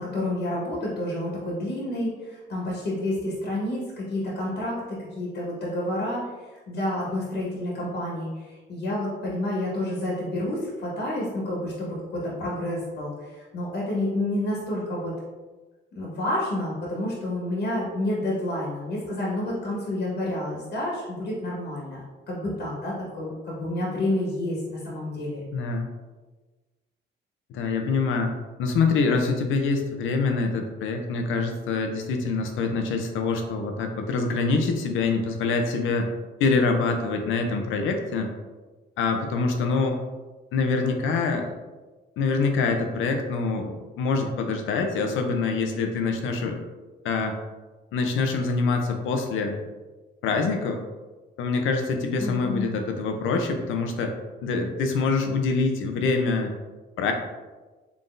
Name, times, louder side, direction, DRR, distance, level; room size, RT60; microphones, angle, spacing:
voice 1, 0.0-15.1 15.9-25.4 52.2-52.8, left 1 dB, 55° left, -5 dB, 1.4 m, -29 dB
voice 2, 25.5-25.9 27.5-28.3 28.6-36.1 36.4-38.3 39.0-40.0 40.5-41.5 42.2-46.6 47.0-47.4 47.9-49.6 50.2-50.8 51.4-54.1 54.4-56.5 57.0-57.1, left 4 dB, 85° left, 4 dB, 0.6 m, -25 dB
3.9 x 3.4 x 2.6 m, 1.2 s
cardioid pair, 90°, 20 cm